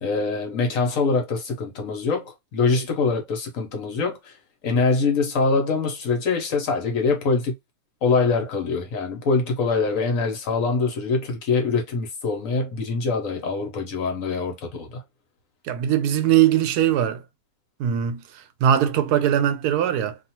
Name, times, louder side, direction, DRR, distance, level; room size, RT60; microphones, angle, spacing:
voice 1, 0.0-4.4 4.6-7.5 8.0-15.0, left 4 dB, 65° left, 1.2 m, -24 dB
voice 2, 15.6-17.2 17.8-20.2, right 10 dB, 85° right, 1.1 m, -21 dB
2.6 x 2.4 x 2.8 m
omnidirectional pair, 1.6 m